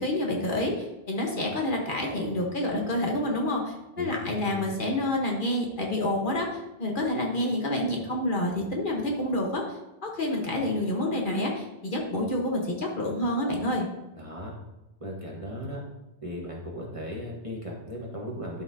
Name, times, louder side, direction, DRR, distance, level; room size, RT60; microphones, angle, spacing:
voice 1, 0.0-9.6 10.0-13.9, left 1 dB, 55° left, 0 dB, 1.4 m, -28 dB
voice 2, 4.0-4.6 14.1-14.5 15.0-15.8 16.2-18.6, equal, 30° right, -3 dB, 1.6 m, -37 dB
11.5 x 5.7 x 2.8 m, 0.99 s
omnidirectional pair, 1.0 m